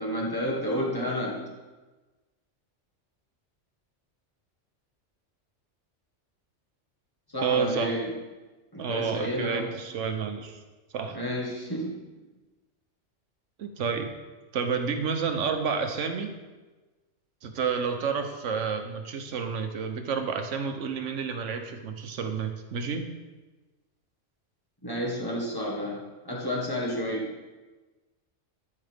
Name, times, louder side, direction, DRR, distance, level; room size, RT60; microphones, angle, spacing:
voice 1, 0.0-1.5 7.3-8.1 8.7-9.8 11.1-12.0 24.8-27.4, equal, 20° left, -4 dB, 1.8 m, -31 dB
voice 2, 7.4-8.0 8.8-10.6 10.9-11.2 13.6-14.1 14.5-16.3 17.4-23.1, right 6 dB, 85° right, 6 dB, 1.2 m, -30 dB
13.0 x 5.6 x 3.5 m, 1.2 s
omnidirectional pair, 1.2 m